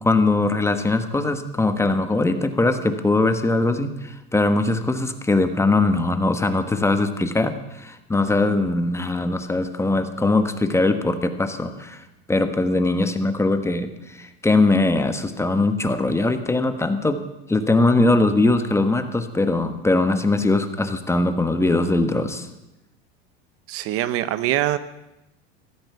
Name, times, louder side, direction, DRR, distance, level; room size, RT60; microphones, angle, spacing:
voice 1, 0.0-17.2 17.5-22.5, left 2 dB, 10° left, 8 dB, 1.4 m, -21 dB
voice 2, 23.7-24.8, right 14 dB, 50° right, 15 dB, 0.8 m, -23 dB
15.5 x 13.0 x 6.9 m, 0.92 s
supercardioid pair, 115°, 30 cm